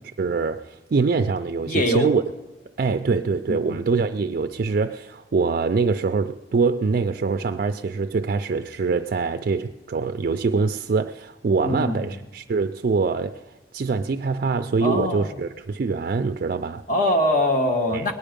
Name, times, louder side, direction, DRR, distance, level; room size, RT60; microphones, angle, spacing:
voice 1, 0.2-2.2 2.8-13.4 13.7-16.8 17.9-18.1, right 4 dB, 55° right, 0.4 m, -24 dB
voice 2, 1.7-2.1 3.5-3.8 11.6-12.2 14.8-15.3 16.9-18.1, left 1 dB, 45° left, 1.5 m, -23 dB
20.0 x 9.8 x 5.2 m
head